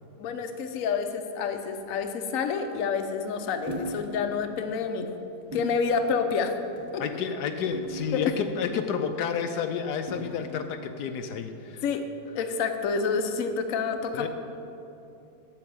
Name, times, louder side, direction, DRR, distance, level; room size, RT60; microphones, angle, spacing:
voice 1, 0.2-5.1 5.5-6.5 6.9-7.0 8.1-8.2 11.8-12.0 12.3-14.3, left 5 dB, 60° left, 6 dB, 1.1 m, -28 dB
sound 1, 3.7-4.1 4.6-4.7 5.5-5.9 6.7-7.0 7.7-8.6 10.1-10.6, right 1 dB, 15° right, 0.7 m, -39 dB
voice 2, 7.0-11.8 14.1-14.3, left 6 dB, 80° left, 7 dB, 1.2 m, -30 dB
8.7 x 6.8 x 8.6 m, 2.9 s
omnidirectional pair, 1.8 m